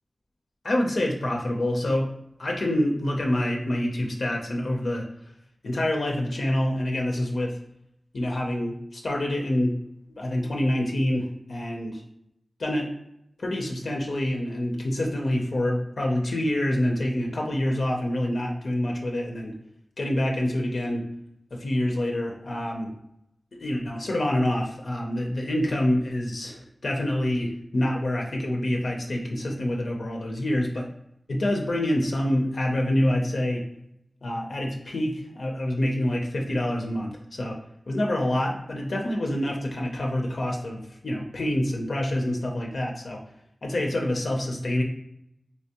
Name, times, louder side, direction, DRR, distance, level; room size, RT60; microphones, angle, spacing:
voice 1, 0.6-2.1 2.4-5.1 5.6-7.5 8.1-9.7 10.2-12.0 12.6-12.9 13.4-19.5 20.0-21.0 21.5-22.9 23.6-30.9 31.3-33.6 34.2-37.6 37.9-43.2 43.6-44.8, left 1 dB, 85° left, 0 dB, 0.5 m, -26 dB
3.4 x 2.9 x 2.9 m, 0.76 s
wide cardioid pair, 65°, 0 cm